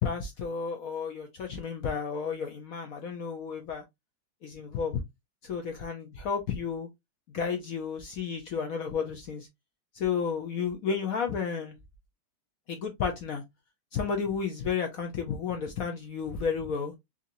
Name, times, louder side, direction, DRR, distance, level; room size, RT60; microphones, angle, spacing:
voice 1, 0.0-3.8 4.4-5.0 5.4-6.9 7.3-9.5 9.9-11.8 12.7-13.4 13.9-16.9, left 6 dB, 65° left, 0.9 m, -32 dB
3.8 x 2.9 x 2.6 m
omnidirectional pair, 2.1 m